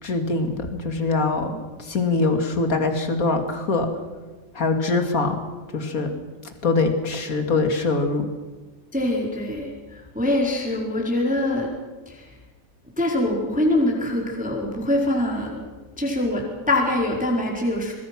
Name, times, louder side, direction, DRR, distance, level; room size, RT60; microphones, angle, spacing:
voice 1, 0.0-3.9 4.5-5.4 5.7-6.1 6.6-8.3, left 3 dB, 35° left, 5 dB, 1.4 m, -23 dB
voice 2, 8.9-11.7 12.1-12.3 13.0-15.6 16.0-17.9, left 1 dB, ahead, -1 dB, 3.8 m, -24 dB
26.0 x 21.0 x 6.1 m, 1.3 s
omnidirectional pair, 5.1 m